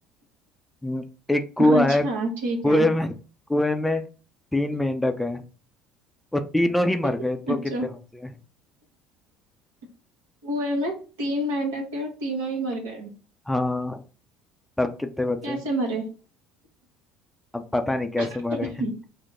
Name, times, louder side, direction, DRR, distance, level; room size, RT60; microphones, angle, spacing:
voice 1, 0.8-2.0 2.6-3.1 3.5-4.0 4.5-5.4 6.3-8.3 13.5-14.0 14.8-15.6 17.5-18.7, left 1 dB, 5° left, 7 dB, 0.5 m, -24 dB
voice 2, 1.6-2.9 7.5-7.9 10.4-13.1 15.4-16.1 18.2-18.9, right 1 dB, 75° right, 1 dB, 1.1 m, -28 dB
4.6 x 2.1 x 3.8 m, 0.36 s
hypercardioid pair, 60°, 0 cm